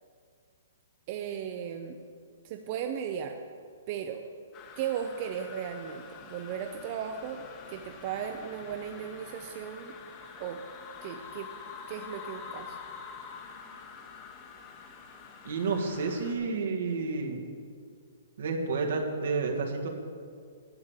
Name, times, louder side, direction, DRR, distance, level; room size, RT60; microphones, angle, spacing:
voice 1, 1.1-2.0 2.4-3.4 3.9-4.2 4.8-10.0 10.4-10.6 11.0-11.5 11.9-12.8, right 8 dB, 35° right, 4 dB, 0.6 m, -36 dB
sound 1, 4.5-16.3, left 6 dB, 25° left, 1.1 m, -46 dB
voice 2, 15.4-17.4 18.4-19.9, right 4 dB, 70° right, 1 dB, 1.8 m, -30 dB
10.5 x 7.2 x 7.4 m, 2.1 s
hypercardioid pair, 165°, 0 cm